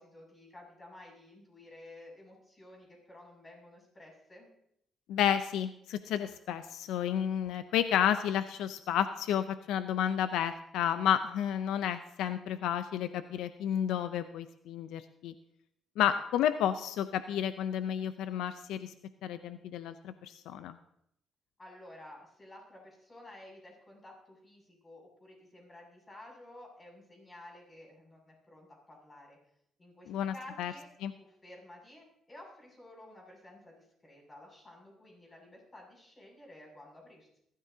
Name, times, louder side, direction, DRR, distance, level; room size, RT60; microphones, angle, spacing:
voice 1, 0.0-4.5 21.6-29.4 29.8-30.9 31.2-37.3, left 1 dB, 25° left, -1 dB, 6.9 m, -53 dB
voice 2, 5.1-15.3 16.0-18.9 19.2-20.8 30.1-30.7 31.0-31.1, left 10 dB, 90° left, 11 dB, 0.5 m, -31 dB
21.5 x 13.5 x 2.8 m, 0.73 s
cardioid pair, 90°, 0 cm